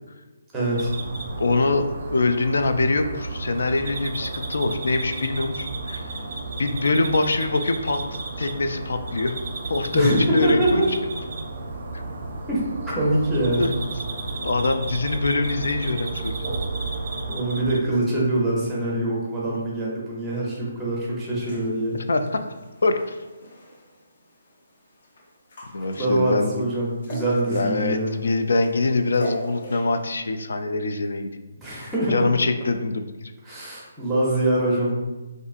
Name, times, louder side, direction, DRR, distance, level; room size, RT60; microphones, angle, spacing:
voice 1, 0.5-0.9 9.9-10.9 12.5-13.7 17.3-21.9 26.0-28.2 31.6-32.1 32.6-32.7 33.4-34.9, right 1 dB, 5° right, -6 dB, 0.7 m, -24 dB
sound 1, 0.7-17.8, right 3 dB, 50° right, 0.5 m, -32 dB
voice 2, 1.4-6.0 6.6-8.0 8.4-9.3 9.7-10.8 11.9-12.0 13.6-13.7 14.2-16.6 19.4-19.6 21.9-22.2 22.8-23.2 25.7-26.6 27.5-33.3, left 3 dB, 80° left, 7 dB, 0.3 m, -24 dB
sound 2, 21.4-30.1, left 1 dB, 50° left, 0.7 m, -40 dB
3.8 x 2.5 x 2.4 m, 1.2 s
hypercardioid pair, 170°, 0 cm